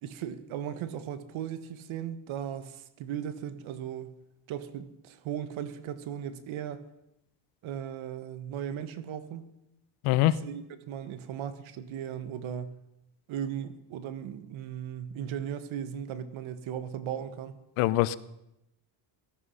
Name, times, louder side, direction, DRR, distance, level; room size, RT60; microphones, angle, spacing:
voice 1, 0.0-4.2 4.5-6.8 7.6-9.4 10.2-12.7 13.3-17.5, right 9 dB, 70° right, 12 dB, 1.6 m, -37 dB
voice 2, 10.0-10.4 17.8-18.2, left 16 dB, 90° left, 17 dB, 0.9 m, -23 dB
17.5 x 13.5 x 5.6 m, 0.84 s
cardioid pair, 110°, 50 cm